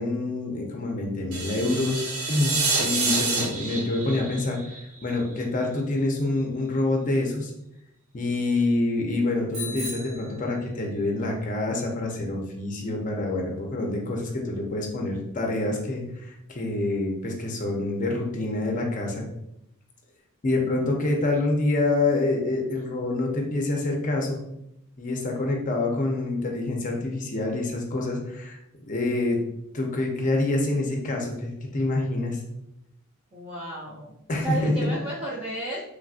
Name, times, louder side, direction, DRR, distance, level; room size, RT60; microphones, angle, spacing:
voice 1, 0.0-7.5 8.1-19.3 20.4-24.6 25.0-28.6 28.9-29.4 29.7-32.4 34.3-34.9, left 2 dB, 35° left, 1 dB, 0.5 m, -26 dB
sound 1, 1.3-5.4, right 3 dB, 70° right, 0.6 m, -28 dB
Bicycle bell, 9.5-11.1, left 2 dB, 50° right, 1.2 m, -37 dB
voice 2, 33.3-34.1 34.4-35.8, right 2 dB, 25° right, -6 dB, 0.5 m, -33 dB
3.2 x 2.5 x 2.4 m, 0.81 s
head